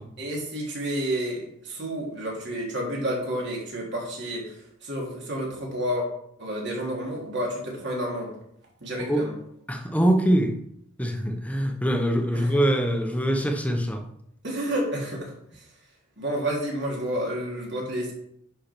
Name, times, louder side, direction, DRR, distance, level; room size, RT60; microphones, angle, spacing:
voice 1, 0.2-6.0 6.4-8.3 8.8-9.3 12.3-12.5 14.4-15.6 16.2-18.1, right 1 dB, 55° right, -2 dB, 3.3 m, -30 dB
voice 2, 9.7-10.6 11.0-14.1, right 1 dB, 5° left, 4 dB, 0.9 m, -23 dB
10.0 x 5.7 x 4.6 m, 0.71 s
head